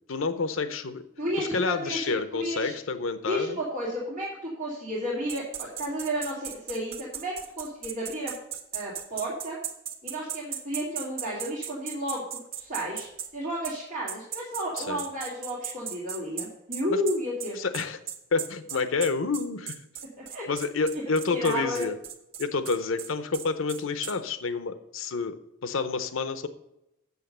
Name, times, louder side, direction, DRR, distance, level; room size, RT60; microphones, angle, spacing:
voice 1, 0.0-1.0 1.4-3.6 14.8-15.0 16.9-17.0 17.6-18.0 18.3-19.8 20.5-22.0 22.4-25.4 25.6-26.5, left 4 dB, 85° left, 11 dB, 0.7 m, -29 dB
voice 2, 1.2-2.8 3.3-8.3 8.7-9.6 10.0-12.2 12.5-13.1 13.3-17.6 20.3-20.5 21.3-21.8, equal, 40° right, -7 dB, 2.6 m, -32 dB
sound 1, 5.3-13.3 13.6-13.8 14.1-24.2, right 9 dB, 85° right, 1.3 m, -37 dB
8.2 x 6.7 x 6.6 m, 0.85 s
head